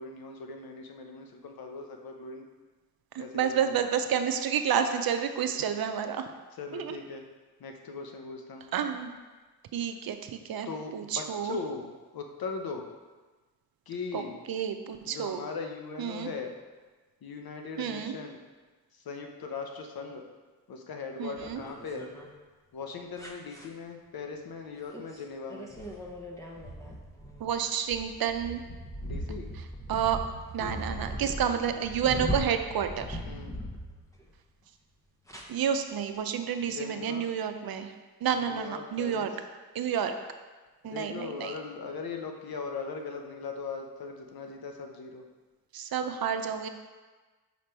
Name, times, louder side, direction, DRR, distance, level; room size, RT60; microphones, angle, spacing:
voice 1, 0.0-2.5 3.2-3.7 6.6-7.2 7.6-8.7 10.6-11.9 12.1-12.9 13.9-14.4 15.1-16.5 17.2-18.4 19.1-20.2 20.7-22.1 22.7-25.7 29.0-29.5 33.2-33.6 36.6-37.3 38.3-39.3 40.8-45.2, left 4 dB, 65° left, 3 dB, 0.9 m, -39 dB
voice 2, 3.1-6.3 6.7-7.0 8.7-9.1 9.7-10.7 10.9-11.6 14.1-14.2 14.5-15.4 16.0-16.3 17.8-18.1 21.2-21.6 27.4-28.6 29.5-30.2 30.5-33.2 35.5-37.9 38.2-39.3 39.7-40.1 40.8-41.6 45.7-46.7, right 8 dB, 65° right, 7 dB, 0.7 m, -30 dB
sound 1, 21.4-22.3 23.2-23.7 24.9-25.2 25.5-34.3 35.3-35.4, equal, 10° left, 1.1 m, -38 dB
5.1 x 5.1 x 4.5 m, 1.3 s
cardioid pair, 65°, 39 cm